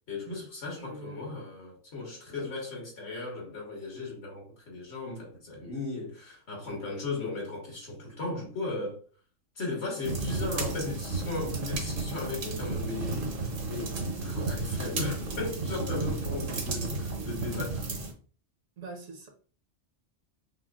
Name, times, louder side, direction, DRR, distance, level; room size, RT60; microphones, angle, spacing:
voice 1, 0.1-9.0 9.5-17.9, left 3 dB, 60° left, 1.6 m, -37 dB
voice 2, 0.8-1.2 18.8-19.3, right 3 dB, 75° right, 1.4 m, -43 dB
sound 1, 10.0-18.1, right 3 dB, 50° right, 0.9 m, -33 dB
5.7 x 2.2 x 2.4 m
omnidirectional pair, 1.3 m